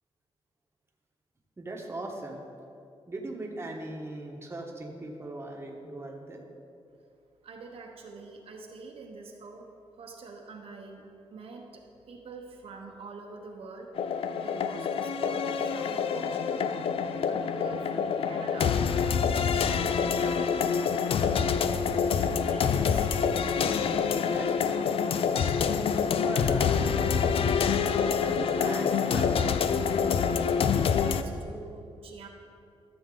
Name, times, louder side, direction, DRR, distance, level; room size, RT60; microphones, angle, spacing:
voice 1, 1.6-2.4 3.1-6.4 23.9-25.0 26.2-27.6 28.3-29.6, right 2 dB, 25° right, 0 dB, 1.2 m, -38 dB
voice 2, 7.4-9.7 9.9-13.9 14.3-16.8 17.3-18.8 19.3-23.1 30.5-32.3, right 4 dB, 70° right, 1 dB, 1.1 m, -45 dB
sound 1, 14.0-31.2, left 6 dB, 65° left, 0.4 m, -26 dB
13.5 x 7.1 x 3.8 m, 2.5 s
wide cardioid pair, 120°, 10 cm